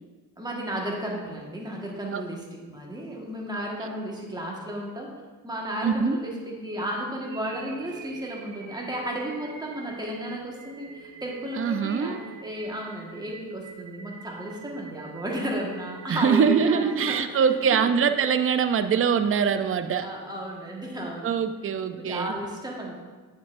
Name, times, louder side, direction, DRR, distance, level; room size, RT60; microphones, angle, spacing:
voice 1, 0.4-5.1 5.4-17.9 20.0-21.3 22.0-22.9, equal, 10° right, -2 dB, 1.4 m, -33 dB
voice 2, 5.8-6.2 11.6-12.2 16.1-20.1 21.2-22.4, right 6 dB, 30° right, 10 dB, 0.5 m, -23 dB
sound 1, 7.2-19.3, right 6 dB, 85° right, 0.7 m, -45 dB
9.2 x 4.4 x 2.5 m, 1.4 s
supercardioid pair, 50°, 44 cm